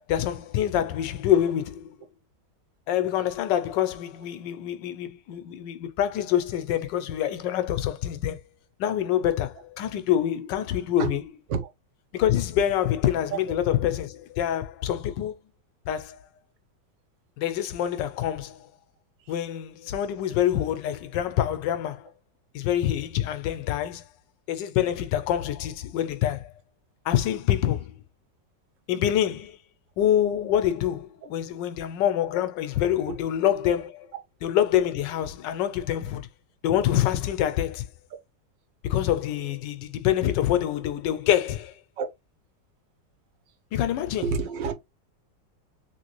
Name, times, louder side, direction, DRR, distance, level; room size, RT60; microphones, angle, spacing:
voice 1, 0.0-1.9 2.9-8.4 8.8-11.2 12.1-15.4 15.9-16.3 17.4-18.7 19.3-22.1 22.5-24.0 24.5-26.5 27.0-28.0 28.9-29.6 30.0-34.1 34.4-36.3 36.6-37.9 38.8-41.8 43.7-44.2, left 11 dB, 85° left, 1.2 m, -26 dB
voice 2, 44.2-44.7, right 5 dB, 85° right, 1.5 m, -28 dB
3.1 x 2.9 x 3.0 m
omnidirectional pair, 1.9 m